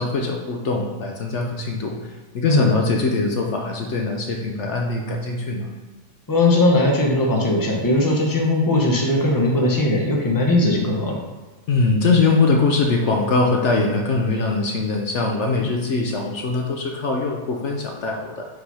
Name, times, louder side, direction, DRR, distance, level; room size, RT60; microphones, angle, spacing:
voice 1, 0.0-1.9 2.3-5.7 11.7-18.5, left 3 dB, 65° left, 1 dB, 1.0 m, -22 dB
voice 2, 6.3-11.2 15.6-15.7, left 2 dB, 15° left, -1 dB, 0.9 m, -19 dB
5.6 x 3.8 x 5.5 m, 1.3 s
omnidirectional pair, 1.4 m